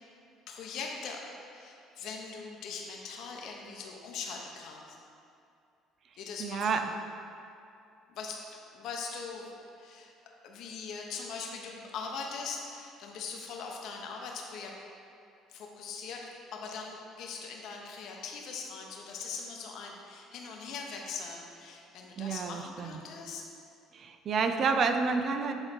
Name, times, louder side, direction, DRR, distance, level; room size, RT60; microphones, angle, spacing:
voice 1, 0.5-1.2 1.5-4.8 6.2-6.8 8.1-9.5 9.8-10.1 10.4-14.7 15.5-23.4, left 5 dB, 65° left, 0 dB, 1.0 m, -41 dB
voice 2, 6.4-6.9 22.2-23.0 23.9-25.5, right 5 dB, 50° right, 7 dB, 0.5 m, -29 dB
7.9 x 3.8 x 4.5 m, 2.5 s
cardioid pair, 100°, 0 cm